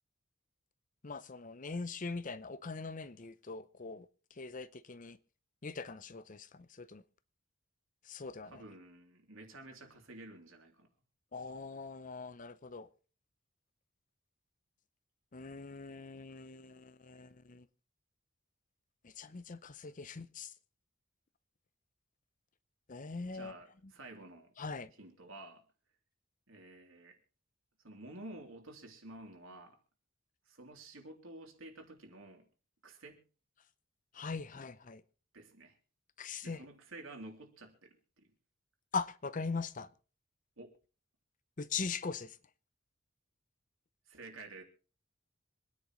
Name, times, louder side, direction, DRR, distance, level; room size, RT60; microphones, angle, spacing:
voice 1, 1.0-5.2 5.6-7.0 8.0-8.6 11.3-12.9 15.3-17.7 19.0-20.5 22.9-23.5 23.8-23.9 24.6-24.9 34.1-35.0 36.2-36.7 38.9-39.9 41.6-42.4, left 4 dB, 40° left, 0.7 m, -41 dB
voice 2, 8.5-10.9 23.3-24.5 25.0-25.6 26.5-27.2 27.8-29.8 30.5-32.5 32.8-33.2 35.3-35.8 36.4-38.3 40.6-40.7 44.1-44.6, right 2 dB, 85° right, 3.3 m, -51 dB
26.0 x 10.0 x 3.1 m
head